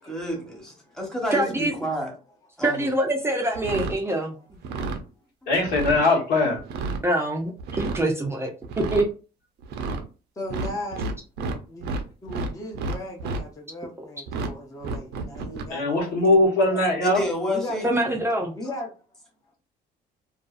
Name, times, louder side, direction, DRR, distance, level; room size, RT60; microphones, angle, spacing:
voice 1, 0.0-2.1 2.6-2.9 17.0-17.9, equal, 5° left, 1.1 m, -29 dB
voice 2, 1.3-1.7 2.6-4.4 7.0-8.5 8.8-9.0 17.8-18.5, right 1 dB, 15° right, 0.4 m, -24 dB
sound 1, 3.5-4.0 4.5-5.0 5.6-6.0 6.6-7.0 7.6-8.0 8.6-9.0 9.6-10.0 10.5-12.0 12.3-13.4 14.3-14.5 14.8-15.6, right 3 dB, 75° right, 0.5 m, -30 dB
voice 3, 5.5-6.6 15.7-17.2, left 2 dB, 75° left, 1.2 m, -21 dB
voice 4, 10.4-11.0 11.7-11.9 12.2-16.1 16.7-16.8 17.5-17.9 18.5-18.9, left 1 dB, 20° left, 0.7 m, -36 dB
2.6 x 2.3 x 2.3 m
cardioid pair, 110°, 17 cm